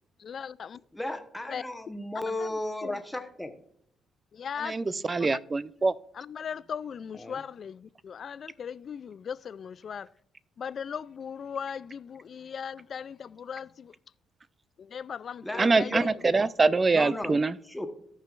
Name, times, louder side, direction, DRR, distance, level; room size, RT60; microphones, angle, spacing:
voice 1, 0.2-0.8 1.5-1.6 2.4-3.0 4.3-5.0 6.1-10.1 10.6-13.9 14.8-16.1, left 7 dB, 55° left, 0.3 m, -38 dB
voice 2, 0.9-3.5 7.2-7.4 15.4-16.3 16.9-17.4 17.6-17.9, left 1 dB, 5° left, 1.1 m, -35 dB
voice 3, 4.6-5.9 15.6-17.5, right 3 dB, 30° right, 0.4 m, -24 dB
17.0 x 5.7 x 2.5 m
cardioid pair, 90°, 0 cm